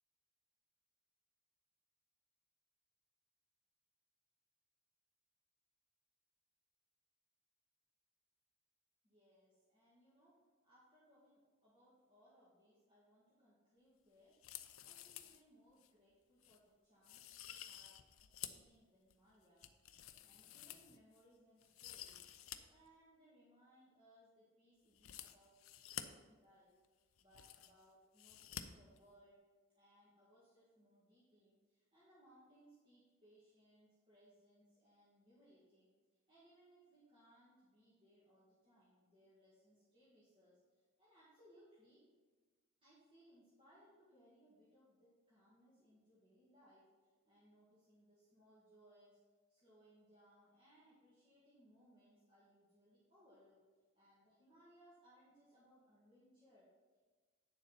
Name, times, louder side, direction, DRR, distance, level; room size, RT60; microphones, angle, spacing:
voice 1, 9.0-14.4 14.8-22.3 22.7-26.8 27.2-29.4 29.7-35.9 36.3-42.0 42.8-49.2 49.5-53.6 53.9-56.7, equal, 25° right, -10 dB, 2.1 m, -68 dB
sound 1, 14.3-15.4 15.8-15.9 16.4-16.6 17.0-18.7 19.1-21.2 21.6-22.6 22.9-23.0 24.9-26.0 26.8-26.9 27.1-27.8 28.2-28.6 28.9-29.0, left 11 dB, 85° left, 0.6 m, -51 dB
9.4 x 6.9 x 4.1 m, 1.3 s
head